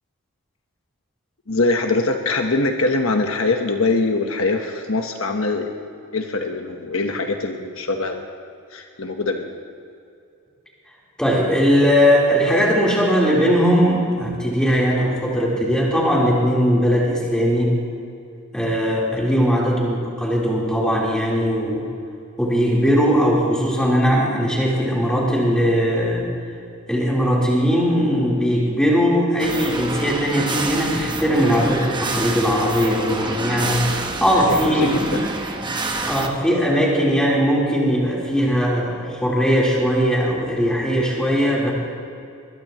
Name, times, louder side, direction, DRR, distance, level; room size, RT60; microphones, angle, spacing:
voice 1, 1.5-5.8 6.1-8.2 8.7-9.5 19.3-19.5 34.3-35.3, left 3 dB, 70° left, 4 dB, 1.2 m, -23 dB
voice 2, 11.2-17.8 18.5-21.8 22.4-26.3 26.9-35.0 36.0-41.7, equal, 5° left, -5 dB, 3.9 m, -19 dB
sound 1, 29.4-36.3, right 2 dB, 20° right, 1.0 m, -27 dB
21.5 x 21.0 x 3.1 m, 2.5 s
head